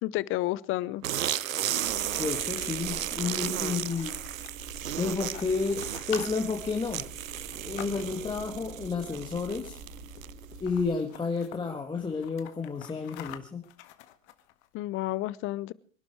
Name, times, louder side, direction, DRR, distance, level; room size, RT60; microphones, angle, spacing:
voice 1, 0.0-1.0 14.7-15.7, left 16 dB, 30° left, 21 dB, 0.7 m, -30 dB
sound 1, 1.0-10.5, right 12 dB, 85° right, 0.7 m, -34 dB
sound 2, 1.8-10.9, right 2 dB, 30° right, 6.0 m, -46 dB
voice 2, 2.2-4.1 5.0-7.1 7.6-9.8 10.6-13.6, left 4 dB, 10° left, 2 dB, 1.7 m, -31 dB
sound 3, 2.7-8.4 9.4-9.9 10.2-10.3 10.5-11.6 12.0-14.7, left 14 dB, 55° left, 1.8 m, -47 dB
24.5 x 11.5 x 4.7 m, 0.42 s
hypercardioid pair, 105°, 39 cm